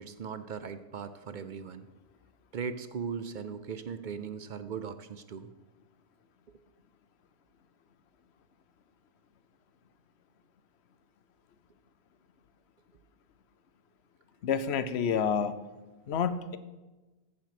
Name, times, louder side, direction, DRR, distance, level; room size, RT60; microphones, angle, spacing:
voice 1, 0.0-1.9 2.5-5.5, right 6 dB, 55° right, 11 dB, 0.7 m, -38 dB
voice 2, 14.4-15.6 16.1-16.6, left 7 dB, 85° left, 13 dB, 1.0 m, -29 dB
15.5 x 5.4 x 5.9 m, 1.2 s
omnidirectional pair, 1.1 m